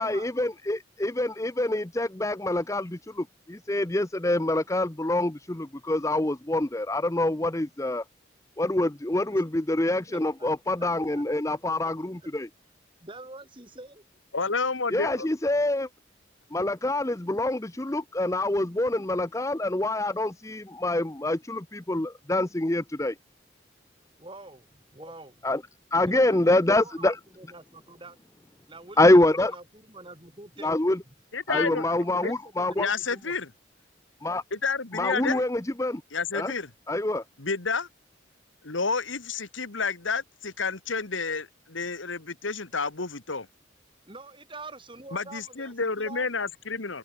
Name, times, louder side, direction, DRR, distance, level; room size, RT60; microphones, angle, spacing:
voice 1, 0.0-8.0 8.6-12.5 14.9-15.9 16.5-23.1 25.4-25.6 25.9-27.2 29.0-29.5 30.6-31.0 31.5-32.9 34.2-34.4 34.9-36.0 36.3-36.5 36.9-37.2, left 1 dB, 15° left, 0.7 m, -26 dB
voice 2, 10.1-11.9 12.2-12.3 13.0-14.0 24.2-25.4 26.1-28.2 28.7-30.7 31.1-31.2 31.5-33.4 44.1-46.3, right 2 dB, 25° right, 3.9 m, -46 dB
voice 3, 14.3-15.3 31.3-31.8 32.2-32.3 32.8-33.5 34.5-35.4 36.1-36.7 37.4-37.9 38.6-43.5 45.1-47.0, left 4 dB, 75° left, 1.9 m, -30 dB
open air
head